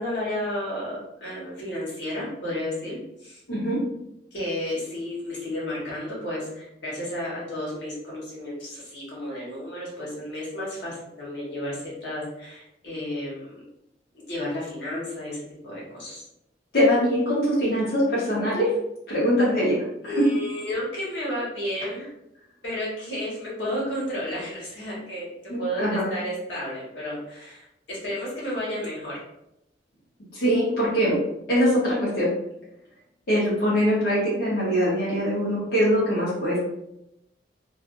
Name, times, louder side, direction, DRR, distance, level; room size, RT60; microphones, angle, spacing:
voice 1, 0.0-3.4 4.3-13.6 14.1-16.2 20.0-22.0 22.6-29.2, left 1 dB, 85° left, -6 dB, 1.2 m, -32 dB
voice 2, 3.5-3.8 16.7-18.7 19.1-19.8 20.0-20.2 25.5-26.0 30.3-31.2 31.5-32.3 33.3-36.6, equal, 60° left, -9 dB, 0.9 m, -22 dB
2.5 x 2.4 x 2.5 m, 0.83 s
head